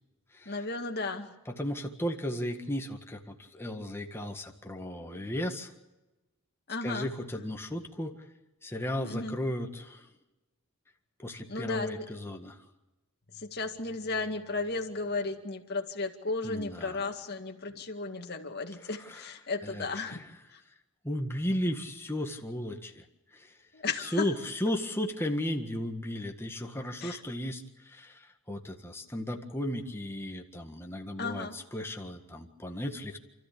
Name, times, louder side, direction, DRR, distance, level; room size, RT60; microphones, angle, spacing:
voice 1, 0.5-1.3 6.7-7.1 9.0-9.3 11.5-11.9 13.3-20.2 20.5-20.6 23.7-24.3 27.0-27.2 31.2-31.5, left 3 dB, 45° left, 3 dB, 2.1 m, -34 dB
voice 2, 1.5-5.7 6.8-8.1 8.6-10.1 11.2-12.6 16.4-17.0 17.7-17.8 18.8-19.3 19.6-20.3 21.0-23.0 23.3-23.6 24.0-33.2, left 1 dB, 10° left, 3 dB, 1.7 m, -35 dB
29.0 x 13.5 x 8.6 m, 1.1 s
head